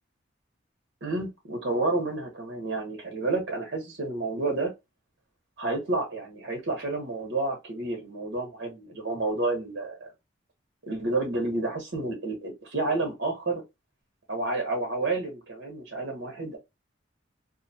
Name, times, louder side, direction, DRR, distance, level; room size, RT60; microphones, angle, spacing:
voice 1, 1.0-4.7 5.6-10.1 10.8-13.6 14.3-16.6, right 2 dB, 60° right, 1.0 m, -30 dB
2.5 x 2.3 x 2.6 m
head